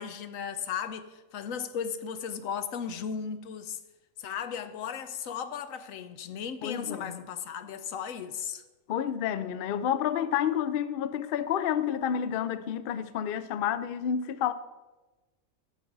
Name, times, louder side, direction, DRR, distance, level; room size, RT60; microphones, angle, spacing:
voice 1, 0.0-3.8 4.2-8.6, left 7 dB, 85° left, 1.1 m, -36 dB
voice 2, 6.6-7.1 8.9-14.5, left 9 dB, 60° left, 0.6 m, -29 dB
13.5 x 7.4 x 3.9 m
omnidirectional pair, 1.4 m